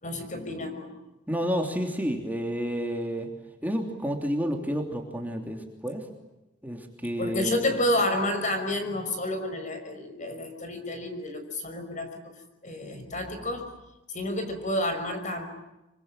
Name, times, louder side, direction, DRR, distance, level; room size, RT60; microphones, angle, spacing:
voice 1, 0.0-1.0 7.2-12.2 12.6-13.7 14.1-15.4, left 1 dB, 40° left, 7 dB, 5.6 m, -30 dB
voice 2, 1.3-3.3 3.6-6.1 6.6-7.6, equal, 10° right, 2 dB, 3.1 m, -30 dB
26.5 x 24.5 x 8.9 m, 0.97 s
head